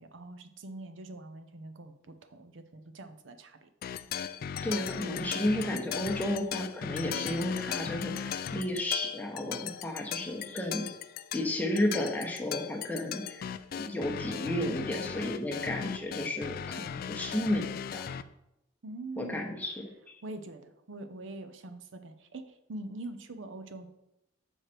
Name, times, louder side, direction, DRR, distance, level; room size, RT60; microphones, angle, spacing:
voice 1, 0.0-3.7 18.8-19.5 20.2-23.9, right 2 dB, 70° right, 8 dB, 0.6 m, -44 dB
sound 1, 3.8-18.2, left 8 dB, 50° left, 0.3 m, -38 dB
voice 2, 4.6-10.9 11.3-13.4 13.7-18.1 19.2-19.8, left 1 dB, 10° left, 0 dB, 1.0 m, -32 dB
6.3 x 4.9 x 4.4 m, 0.86 s
head